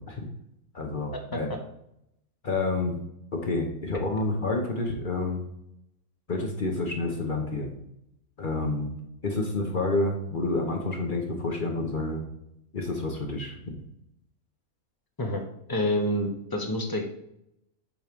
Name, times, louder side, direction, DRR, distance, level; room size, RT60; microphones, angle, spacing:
voice 1, 0.7-1.5 2.4-2.9 3.3-5.4 6.3-7.7 8.4-8.9 9.2-12.2 12.7-13.8, left 2 dB, 40° left, 1 dB, 0.9 m, -29 dB
voice 2, 15.7-17.1, left 1 dB, 20° left, 3 dB, 0.8 m, -27 dB
7.5 x 3.2 x 5.2 m, 0.78 s
omnidirectional pair, 1.6 m